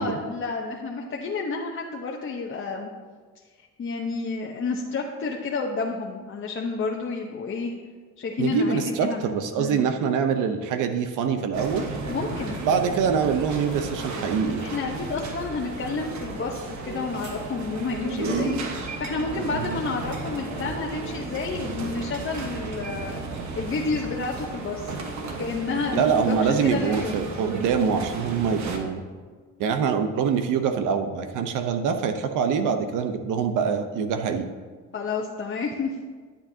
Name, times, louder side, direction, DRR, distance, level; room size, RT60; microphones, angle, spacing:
voice 1, 0.0-2.9 3.8-7.7 8.2-9.8 12.1-12.6 14.6-24.9 25.4-27.3 34.9-35.9, left 4 dB, 40° left, -1 dB, 0.9 m, -30 dB
voice 2, 8.4-11.8 12.6-14.7 19.5-19.8 25.9-29.0 29.6-34.5, right 6 dB, 90° right, 8 dB, 0.8 m, -24 dB
sound 1, 11.5-28.8, right 3 dB, 70° right, 1.3 m, -33 dB
11.5 x 7.9 x 2.8 m, 1.5 s
cardioid pair, 90°, 30 cm